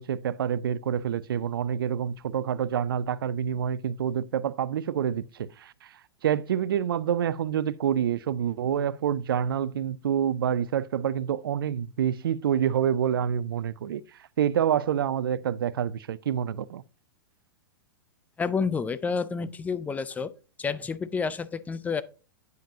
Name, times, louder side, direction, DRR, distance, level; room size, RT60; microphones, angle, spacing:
voice 1, 0.0-5.9 6.2-14.0 14.4-16.8, right 9 dB, 75° right, 0.4 m, -27 dB
voice 2, 18.4-20.3 20.6-22.0, left 5 dB, 15° left, 0.4 m, -29 dB
9.1 x 5.0 x 2.7 m
hypercardioid pair, 110°, 12 cm